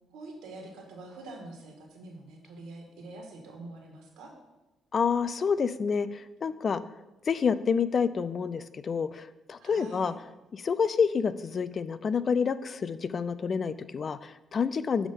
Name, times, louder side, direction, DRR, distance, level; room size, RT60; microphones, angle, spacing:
voice 1, 0.1-4.3 9.6-10.1, right 2 dB, 90° right, 1 dB, 1.7 m, -45 dB
voice 2, 4.9-6.8 7.3-10.1 10.5-15.1, left 6 dB, 45° left, 15 dB, 0.4 m, -28 dB
9.4 x 3.6 x 5.5 m, 1.0 s
cardioid pair, 90°, 0 cm